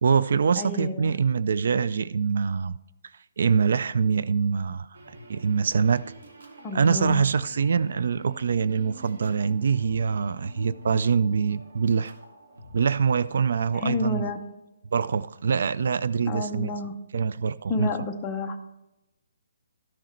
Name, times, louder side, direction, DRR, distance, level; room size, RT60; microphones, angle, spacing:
voice 1, 0.0-2.7 3.4-4.9 5.3-6.1 6.7-12.1 12.7-14.3 14.9-16.8 17.1-17.9, right 6 dB, 55° right, 16 dB, 0.3 m, -24 dB
voice 2, 0.6-1.1 6.6-7.2 13.7-14.4 16.3-16.9 17.7-18.6, left 3 dB, 10° left, 2 dB, 0.7 m, -29 dB
sound 1, 4.9-14.5, equal, 80° right, 2.1 m, -47 dB
12.5 x 6.3 x 4.3 m, 0.97 s
hypercardioid pair, 175°, 0 cm